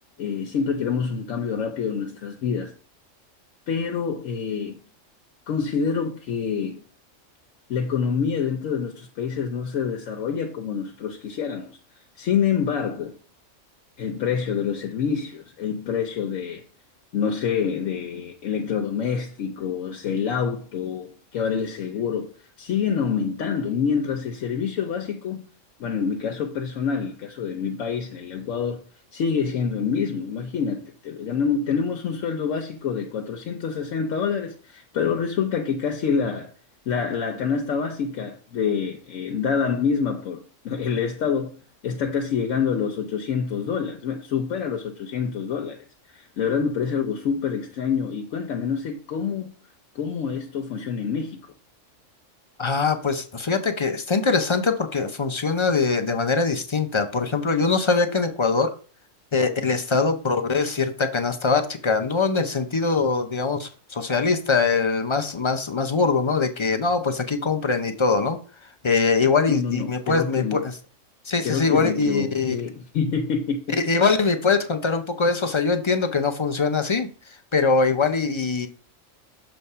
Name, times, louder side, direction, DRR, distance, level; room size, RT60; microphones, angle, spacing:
voice 1, 0.2-2.7 3.7-4.8 5.5-6.8 7.7-11.8 12.2-13.2 14.0-16.6 17.1-25.4 25.8-28.8 29.1-36.5 36.9-41.6 41.8-49.5 49.9-51.5 69.5-70.6 71.4-73.8, left 6 dB, 80° left, 1.1 m, -27 dB
voice 2, 52.6-58.7 59.3-68.4 68.8-70.7 71.3-72.6 73.8-77.1 77.5-78.7, left 4 dB, 40° left, 0.4 m, -22 dB
6.8 x 3.2 x 5.4 m
omnidirectional pair, 1.3 m